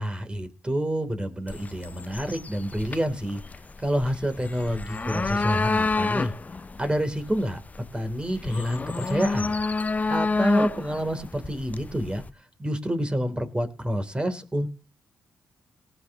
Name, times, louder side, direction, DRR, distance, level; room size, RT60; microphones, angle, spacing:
voice 1, 0.0-3.4 3.8-6.3 6.8-7.6 7.9-9.5 10.1-12.2 12.6-14.7, equal, 20° right, 8 dB, 3.1 m, -28 dB
sound 1, 1.5-12.3, left 3 dB, 30° left, 0.7 m, -30 dB
19.0 x 9.1 x 3.0 m, 0.33 s
supercardioid pair, 55°, 5 cm